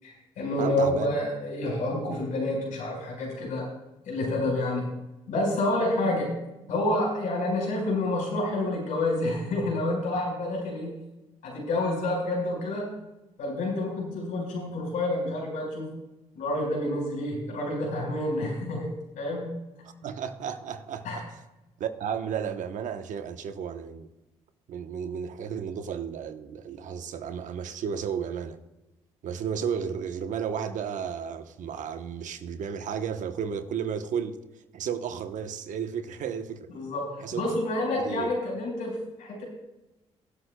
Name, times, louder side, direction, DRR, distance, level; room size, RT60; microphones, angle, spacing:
voice 1, 0.0-3.7 4.1-4.9 5.3-6.3 6.7-10.9 11.4-12.9 13.4-15.9 16.3-19.5 21.0-21.2 36.7-39.4, left 1 dB, 80° left, 4.5 m, -28 dB
voice 2, 0.6-1.1 19.8-21.4 21.8-24.1 24.7-28.6 29.2-34.4 34.7-36.7 37.2-37.5 38.0-38.3, right 7 dB, 70° right, 1.0 m, -33 dB
23.0 x 8.1 x 2.2 m
supercardioid pair, 50°, 13 cm